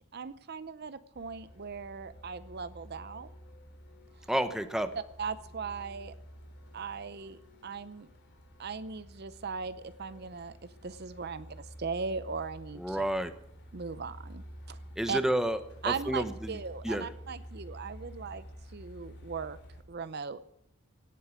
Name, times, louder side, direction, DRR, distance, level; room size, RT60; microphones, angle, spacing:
voice 1, 0.1-3.3 5.2-6.1 6.7-8.1 8.6-13.0 13.7-14.8 15.1-15.2 15.8-18.4 18.7-19.6 19.9-20.4, right 5 dB, 50° right, 14 dB, 0.6 m, -38 dB
Truck, 1.1-19.8, equal, 55° left, 3.0 m, -50 dB
voice 2, 4.3-4.9 12.8-13.3 15.0-15.6 15.9-16.5 16.8-17.1, right 1 dB, 5° right, 9 dB, 1.0 m, -30 dB
17.0 x 8.5 x 9.6 m, 0.76 s
head